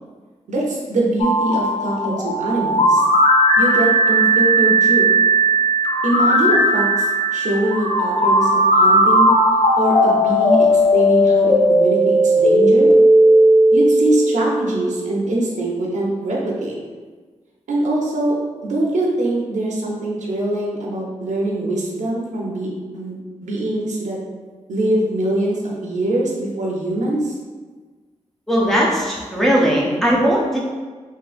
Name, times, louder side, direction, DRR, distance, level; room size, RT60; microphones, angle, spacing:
voice 1, 0.5-3.0 3.6-5.1 6.0-9.3 9.8-12.9 13.7-16.7 17.7-22.7 22.9-24.2 24.7-27.4, right 1 dB, 85° right, -3 dB, 0.7 m, -23 dB
sound 1, 1.2-15.0, right 1 dB, 55° left, 0.5 m, -16 dB
voice 2, 28.5-30.6, equal, ahead, -5 dB, 0.5 m, -18 dB
3.6 x 2.6 x 2.5 m, 1.4 s
wide cardioid pair, 150°, 12 cm